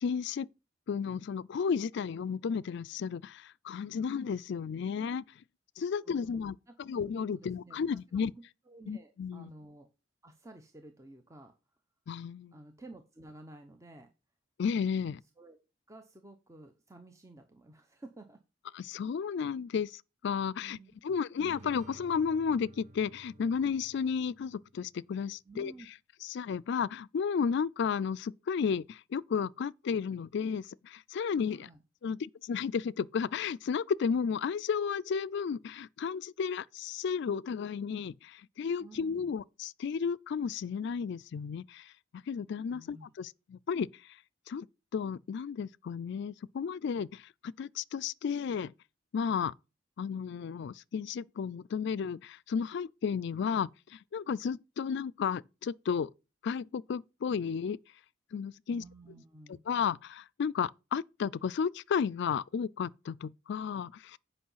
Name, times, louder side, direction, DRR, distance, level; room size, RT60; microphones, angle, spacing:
voice 1, 0.0-0.5 0.9-5.2 5.8-8.3 8.9-9.5 12.1-12.5 14.6-15.2 18.7-20.8 21.0-25.7 26.2-31.7 32.0-41.9 42.3-43.9 44.5-44.7 44.9-48.7 49.1-49.5 50.0-56.1 56.4-57.8 58.3-58.8 59.7-64.2, left 6 dB, 60° left, 0.3 m, -33 dB
voice 2, 5.9-6.5 6.8-7.0 7.3-8.2 8.7-9.9 10.2-11.5 12.5-14.1 15.4-15.6 15.9-18.4 20.6-20.9 25.4-25.9 31.5-31.8 38.8-39.3 42.7-43.1 58.7-59.6, right 2 dB, 15° right, 0.8 m, -52 dB
sound 1, 21.4-25.0, right 2 dB, 40° right, 1.1 m, -54 dB
8.6 x 5.4 x 5.6 m
head